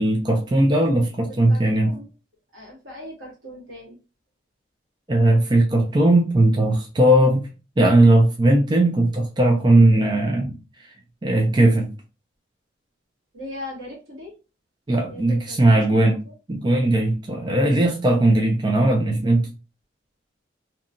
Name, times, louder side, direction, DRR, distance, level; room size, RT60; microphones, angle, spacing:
voice 1, 0.0-1.9 5.1-7.5 7.8-10.6 11.2-11.9 14.9-16.2 16.5-19.5, right 1 dB, 20° right, 1 dB, 0.4 m, -18 dB
voice 2, 1.3-2.1 2.5-4.0 13.3-14.3 15.0-16.3, left 1 dB, 80° right, -2 dB, 1.3 m, -39 dB
2.9 x 2.2 x 2.5 m, 0.31 s
head